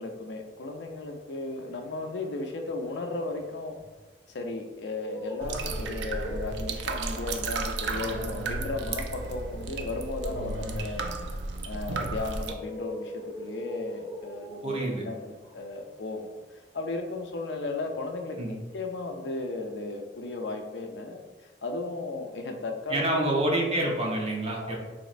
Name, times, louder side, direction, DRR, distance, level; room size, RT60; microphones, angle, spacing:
voice 1, 0.0-3.8 4.3-11.1 11.6-16.3 16.7-21.2 21.6-23.5 24.6-24.8, left 2 dB, 80° left, 4 dB, 0.5 m, -35 dB
sound 1, 1.1-4.4 4.7-18.2 18.4-19.5, equal, 40° left, 1.4 m, -45 dB
sound 2, 5.4-12.5, right 3 dB, 85° right, 0.4 m, -33 dB
voice 2, 14.6-15.0 18.4-18.5 22.9-24.8, right 1 dB, 35° right, -2 dB, 0.7 m, -27 dB
4.1 x 3.0 x 2.4 m, 1.2 s
head